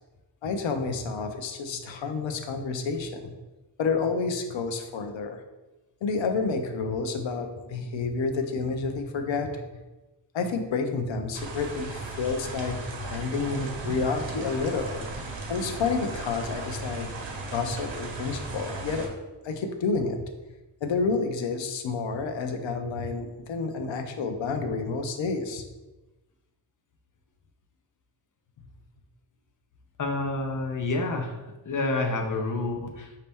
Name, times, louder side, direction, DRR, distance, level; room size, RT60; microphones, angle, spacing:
voice 1, 0.4-3.3 3.8-5.4 6.0-9.5 10.3-12.8 13.1-15.0 15.5-17.1 17.5-19.1 19.4-20.3 20.8-25.6, left 4 dB, 85° left, 6 dB, 0.7 m, -29 dB
sound 1, 11.3-19.1, right 2 dB, 85° right, 0.9 m, -36 dB
voice 2, 30.0-31.4 31.7-33.2, left 2 dB, 45° left, 3 dB, 0.6 m, -28 dB
5.2 x 2.8 x 3.4 m, 1.1 s
wide cardioid pair, 145°, 44 cm